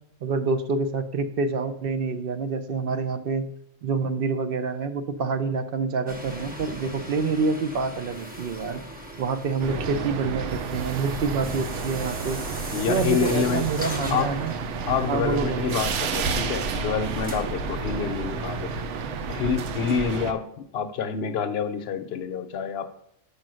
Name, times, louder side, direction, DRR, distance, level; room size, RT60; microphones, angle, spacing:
voice 1, 0.2-3.5 3.8-8.8 9.2-12.4 12.9-14.6 15.1-15.7, right 4 dB, 60° right, 9 dB, 0.7 m, -27 dB
sound 1, 6.1-17.6, equal, 10° right, 0.8 m, -40 dB
sound 2, 9.6-20.3, right 4 dB, 85° right, 1.0 m, -30 dB
voice 2, 12.7-13.7 14.1-14.3 14.9-18.7 19.3-22.9, left 6 dB, 65° left, 9 dB, 0.8 m, -27 dB
5.7 x 5.2 x 6.2 m, 0.73 s
omnidirectional pair, 1.2 m